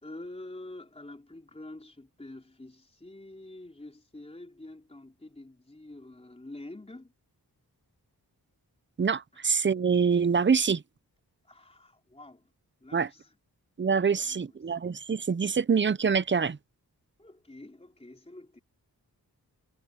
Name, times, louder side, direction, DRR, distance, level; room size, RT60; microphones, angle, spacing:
voice 1, 0.0-7.1 9.3-9.5 11.4-12.5 12.8-13.4 14.2-14.8 17.2-18.6, left 2 dB, 15° left, 3.8 m, -47 dB
voice 2, 9.0-10.8 12.9-13.1 13.8-16.6, right 6 dB, 30° right, 0.6 m, -25 dB
wide cardioid pair, 115°, 39 cm